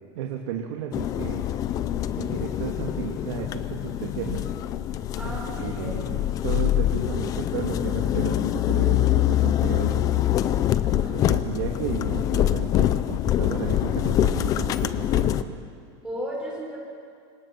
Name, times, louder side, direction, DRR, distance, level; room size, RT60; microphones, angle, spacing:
voice 1, 0.1-1.5 2.1-4.4 5.2-10.3 10.9-15.6, right 8 dB, 70° right, 1 dB, 2.3 m, -34 dB
sound 1, 0.9-15.4, left 12 dB, 25° left, 0.6 m, -24 dB
voice 2, 5.1-6.1 10.8-11.2 16.0-16.8, right 1 dB, 5° right, -4 dB, 6.9 m, -35 dB
29.5 x 26.0 x 5.9 m, 2.3 s
supercardioid pair, 175°, 15 cm